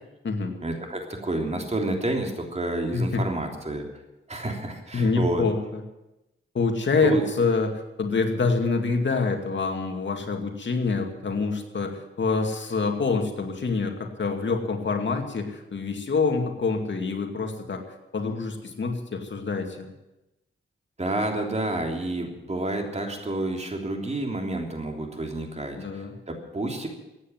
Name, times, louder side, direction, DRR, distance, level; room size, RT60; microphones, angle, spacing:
voice 1, 0.6-3.8 4.3-5.4 7.0-7.2 21.0-26.9, right 2 dB, 35° right, 2 dB, 3.3 m, -29 dB
voice 2, 2.9-3.2 4.9-5.8 6.5-17.8 18.1-19.9 25.8-26.1, left 4 dB, 65° left, 4 dB, 2.3 m, -26 dB
15.0 x 9.5 x 9.4 m, 0.96 s
wide cardioid pair, 95°, 21 cm